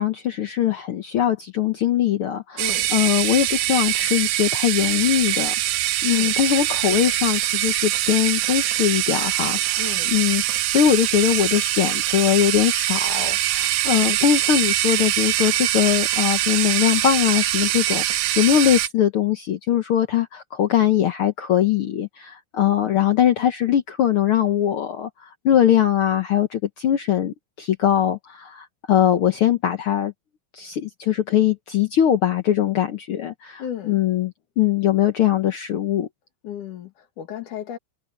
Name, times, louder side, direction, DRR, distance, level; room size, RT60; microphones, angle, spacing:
voice 1, 0.0-5.5 6.0-9.8 10.1-30.1 30.5-36.1, left 10 dB, 85° left, 1.2 m, -21 dB
voice 2, 2.6-2.9 6.1-6.3 9.8-10.1 33.6-34.0 36.4-37.8, left 10 dB, 65° left, 3.7 m, -34 dB
sound 1, 2.6-18.9, right 14 dB, 75° right, 2.2 m, -23 dB
omnidirectional pair, 4.0 m